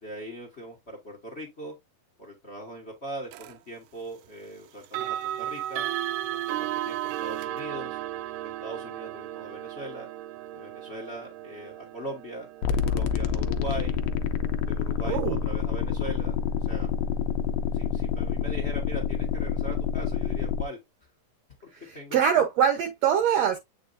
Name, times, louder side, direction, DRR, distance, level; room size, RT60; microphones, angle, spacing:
voice 1, 0.0-1.8 2.2-5.9 6.5-8.0 8.4-10.1 10.5-12.5 12.8-14.0 14.7-16.9 17.7-20.8 21.9-22.4, right 1 dB, 55° left, 0.7 m, -40 dB
sound 1, 3.3-3.5 4.8-15.7, right 13 dB, 80° right, 2.0 m, -35 dB
sound 2, 12.6-20.6, left 7 dB, 80° left, 1.6 m, -27 dB
voice 2, 15.0-15.4 21.8-23.6, right 8 dB, 65° right, 1.9 m, -24 dB
8.3 x 4.6 x 2.6 m
omnidirectional pair, 3.8 m